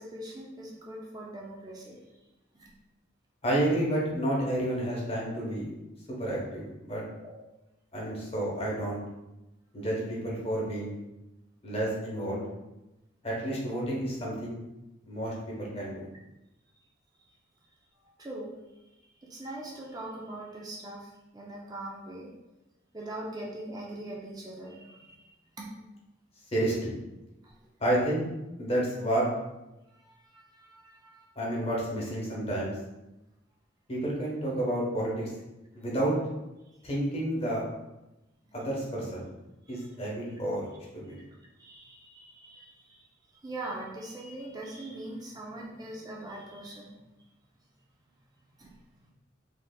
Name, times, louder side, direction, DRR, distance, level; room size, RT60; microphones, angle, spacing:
voice 1, 0.0-2.0 2.5-2.7 7.2-7.3 18.2-18.5 19.0-22.3 22.9-25.3 25.6-25.7 27.4-27.6 29.9-31.2 38.4-38.5 39.7-39.9 41.1-41.2 41.6-43.1 43.3-47.0 48.6-48.8 49.0-49.1, right 1 dB, 20° right, -3 dB, 0.4 m, -42 dB
voice 2, 3.4-5.7 6.1-7.0 7.9-9.0 9.7-10.9 11.6-12.4 13.2-14.6 15.1-16.0 26.5-26.9 27.8-28.3 28.6-29.3 31.4-32.7 33.9-35.3 35.7-36.1 36.8-37.7 38.5-39.3 39.7-40.7 40.9-41.0, right 1 dB, 30° left, -4 dB, 0.8 m, -30 dB
3.4 x 2.8 x 2.2 m, 0.97 s
head